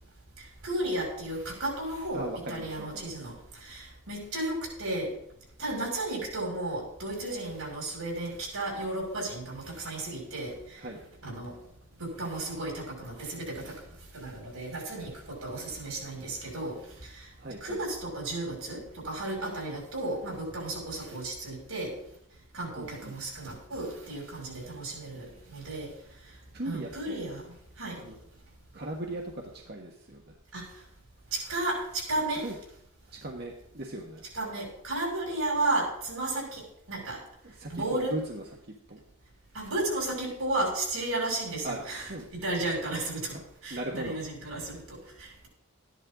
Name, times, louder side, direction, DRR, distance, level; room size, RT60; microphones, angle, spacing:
voice 1, 0.6-5.1 5.6-10.8 11.2-11.6 12.0-13.8 14.1-16.8 17.0-17.3 17.6-21.9 22.5-25.9 26.6-27.4 27.8-28.0 30.5-30.6 31.3-32.5 34.3-36.6 36.9-37.2 37.7-38.1 39.5-43.4 43.6-45.5, right 2 dB, 85° right, -1 dB, 5.9 m, -33 dB
voice 2, 2.1-3.3 10.8-11.0 17.4-17.8 22.8-23.2 26.5-27.2 28.0-28.2 28.7-30.3 32.4-32.6 33.1-34.2 37.4-38.4 38.9-39.0 41.6-42.3 43.2-43.4 43.7-44.2, right 1 dB, 50° right, 0 dB, 1.3 m, -38 dB
14.0 x 11.0 x 3.9 m, 0.73 s
head